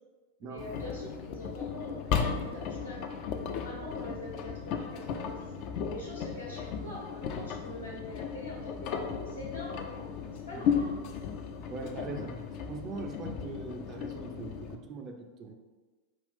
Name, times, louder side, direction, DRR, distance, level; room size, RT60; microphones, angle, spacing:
voice 1, 0.4-11.0 11.7-12.3, left 2 dB, 80° left, -4 dB, 1.2 m, -44 dB
Engine, 0.6-14.8, left 6 dB, 40° left, 0.4 m, -35 dB
voice 2, 11.7-15.5, right 4 dB, 30° right, 4 dB, 0.4 m, -41 dB
5.3 x 2.3 x 3.5 m, 1.3 s
figure-of-eight pair, 90°, 0 cm